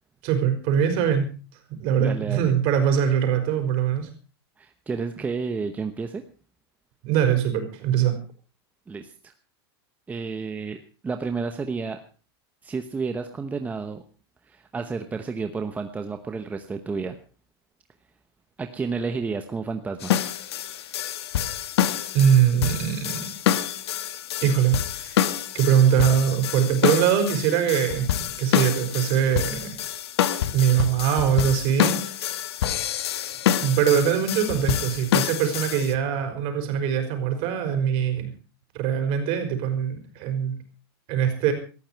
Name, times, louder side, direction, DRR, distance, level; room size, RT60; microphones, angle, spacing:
voice 1, 0.2-1.3 1.7-4.1 7.0-8.1 22.1-23.3 24.4-28.1 28.4-29.8 30.5-32.4 33.6-38.3 38.7-40.6 41.1-41.5, right 8 dB, 45° right, 6 dB, 5.4 m, -22 dB
voice 2, 2.0-2.5 4.6-6.2 8.9-9.3 10.1-12.0 12.6-14.0 14.4-17.2 18.6-20.1, right 4 dB, 10° right, 7 dB, 1.0 m, -31 dB
sound 1, 20.0-36.0, left 10 dB, 75° left, 1.6 m, -27 dB
18.5 x 14.5 x 4.6 m, 0.36 s
supercardioid pair, 150°, 13 cm